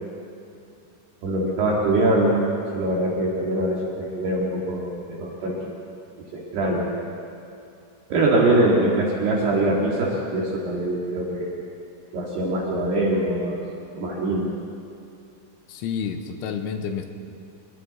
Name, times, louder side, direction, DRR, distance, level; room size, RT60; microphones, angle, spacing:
voice 1, 1.2-2.4 2.7-5.6 6.3-6.9 8.1-11.5 12.1-13.6 13.9-14.5, right 1 dB, 60° right, -4 dB, 3.9 m, -23 dB
voice 2, 15.7-17.1, left 7 dB, 80° left, 5 dB, 3.6 m, -29 dB
29.0 x 21.5 x 4.3 m, 2.6 s
omnidirectional pair, 5.9 m